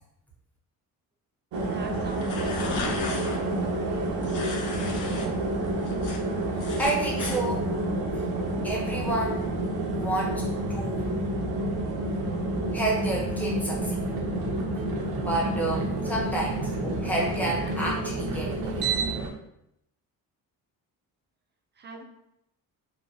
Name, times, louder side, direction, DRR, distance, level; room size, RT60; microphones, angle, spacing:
sound 1, 1.5-19.3, right 2 dB, 75° right, 0.6 m, -29 dB
voice 1, 1.7-4.9 21.7-22.0, right 2 dB, 30° right, 3 dB, 0.4 m, -44 dB
sound 2, 2.0-3.4 4.2-5.3 5.6-7.4, left 4 dB, 55° left, 0.6 m, -35 dB
voice 2, 6.6-7.7 8.1-8.2 8.6-11.2 12.7-14.0 14.5-14.9 15.1-18.9, right 1 dB, 5° left, -3 dB, 0.7 m, -30 dB
3.0 x 2.1 x 2.6 m, 0.79 s
cardioid pair, 110°, 37 cm